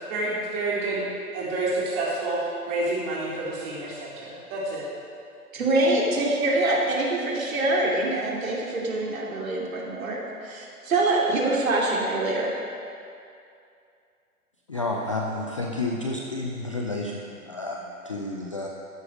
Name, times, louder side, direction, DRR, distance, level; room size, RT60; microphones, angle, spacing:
voice 1, 0.1-1.0 1.3-2.4 2.6-4.9, right 2 dB, 25° right, -7 dB, 3.8 m, -28 dB
voice 2, 5.5-12.5, right 2 dB, 60° right, -2 dB, 2.7 m, -25 dB
voice 3, 14.7-18.7, left 2 dB, 20° left, -1 dB, 0.4 m, -30 dB
13.5 x 10.5 x 5.0 m, 2.5 s
figure-of-eight pair, 120°, 47 cm